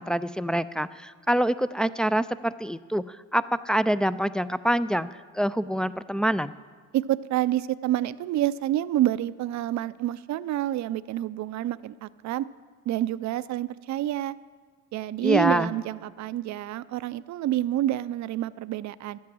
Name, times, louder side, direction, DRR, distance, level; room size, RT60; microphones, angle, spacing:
voice 1, 0.0-5.1 5.3-6.5 15.2-15.7, equal, 5° left, 13 dB, 0.3 m, -25 dB
voice 2, 6.9-12.5 12.9-14.4 14.9-19.2, right 13 dB, 65° right, 16 dB, 0.5 m, -28 dB
12.0 x 8.6 x 7.7 m, 1.5 s
cardioid pair, 90°, 30 cm